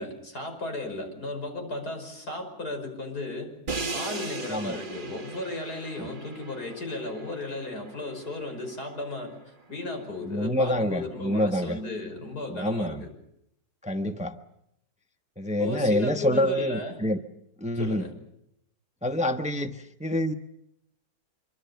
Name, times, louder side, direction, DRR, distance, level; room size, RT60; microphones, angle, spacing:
voice 1, 0.0-3.5 3.9-9.3 9.7-13.1 15.6-17.0 17.7-18.1, left 2 dB, 85° left, 4 dB, 6.1 m, -35 dB
Crash cymbal, 3.7-9.6, right 3 dB, 35° right, 1.8 m, -38 dB
voice 2, 10.2-11.8 12.5-13.0 13.8-14.4 15.4-17.2 17.6-18.1 19.0-20.3, left 1 dB, 5° right, 8 dB, 0.9 m, -27 dB
25.5 x 24.0 x 6.9 m, 0.78 s
omnidirectional pair, 1.6 m